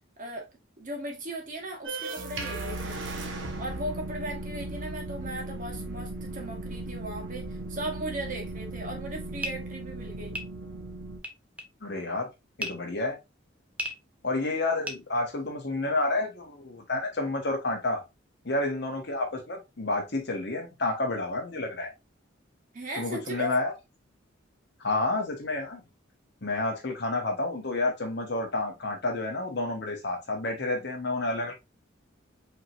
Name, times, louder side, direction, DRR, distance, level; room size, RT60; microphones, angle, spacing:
voice 1, 0.8-3.0 3.6-10.4 22.7-23.6, right 1 dB, 40° right, 1.3 m, -37 dB
sound 1, 1.8-11.2, right 2 dB, 65° right, 0.9 m, -37 dB
sound 2, 9.4-15.8, equal, 5° right, 0.6 m, -39 dB
voice 2, 11.8-12.3 12.6-13.2 14.2-18.0 18.4-21.9 23.0-23.7 24.8-25.8 26.4-31.5, left 2 dB, 55° left, 1.2 m, -30 dB
5.0 x 3.1 x 2.5 m
head